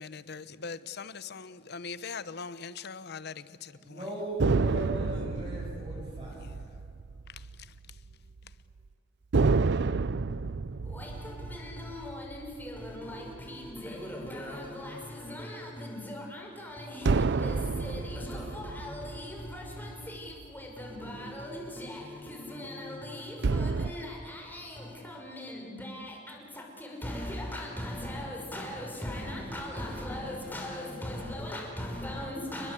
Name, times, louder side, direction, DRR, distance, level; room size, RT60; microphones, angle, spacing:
voice 1, 0.0-4.0 6.4-6.6, left 5 dB, 60° left, 0.9 m, -41 dB
voice 2, 3.8-6.5, right 1 dB, 25° right, 7.6 m, -39 dB
sound 1, 4.4-8.1 8.4-8.5 9.3-14.0 17.1-20.7 23.4-23.9, right 4 dB, 65° right, 0.6 m, -30 dB
voice 3, 10.8-32.7, left 1 dB, 10° left, 5.8 m, -39 dB
30.0 x 21.0 x 8.4 m
head